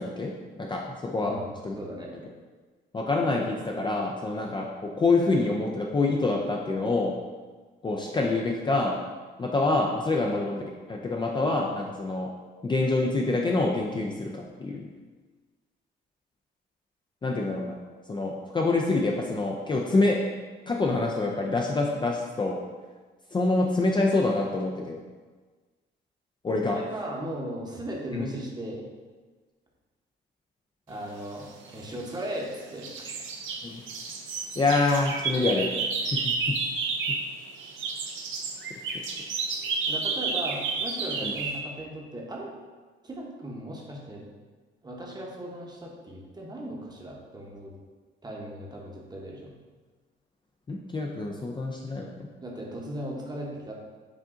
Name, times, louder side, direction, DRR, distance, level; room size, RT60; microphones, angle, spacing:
voice 1, 0.0-1.3 1.6-1.7 2.9-7.1 7.8-9.0 9.4-12.3 12.6-14.9 17.2-17.8 18.1-20.2 20.7-22.6 23.3-25.0 26.4-26.8 28.1-28.3 33.6-33.8 34.6-35.7 36.1-36.6 41.2-41.3 50.7-52.3, left 3 dB, 25° left, -1 dB, 0.4 m, -26 dB
voice 2, 1.8-2.1 26.7-28.9 30.9-33.1 39.9-42.5 43.0-44.2 44.8-47.7 48.2-49.6 52.4-53.7, right 1 dB, 20° right, -2 dB, 0.9 m, -37 dB
sound 1, 31.7-32.5 32.8-37.3 37.6-41.6, right 4 dB, 75° right, 0.6 m, -31 dB
4.9 x 2.6 x 3.6 m, 1.4 s
cardioid pair, 90°, 20 cm